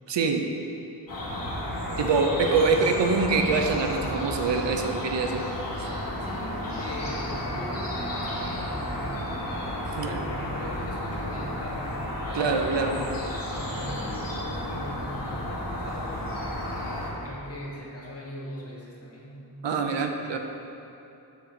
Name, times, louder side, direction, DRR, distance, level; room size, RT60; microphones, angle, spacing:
voice 1, 0.1-0.5 2.0-5.4 5.8-5.9 10.0-10.2 12.3-13.0 19.6-20.4, right 4 dB, 80° right, 4 dB, 0.7 m, -24 dB
sound 1, 1.1-17.1, left 1 dB, 50° left, 1.7 m, -32 dB
voice 2, 6.2-9.5 9.9-11.9 12.2-16.6 17.2-19.5 20.2-20.4, equal, 35° left, -4 dB, 1.4 m, -40 dB
7.2 x 3.9 x 5.9 m, 2.8 s
wide cardioid pair, 100°, 42 cm